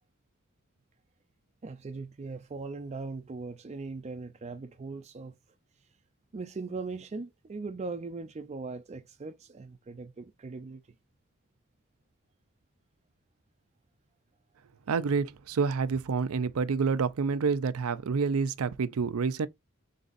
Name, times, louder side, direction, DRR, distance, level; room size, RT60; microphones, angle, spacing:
voice 1, 1.6-5.3 6.3-10.8, right 3 dB, 30° right, 0.4 m, -39 dB
voice 2, 14.9-19.5, right 5 dB, 90° right, 0.5 m, -28 dB
4.0 x 3.9 x 2.5 m
head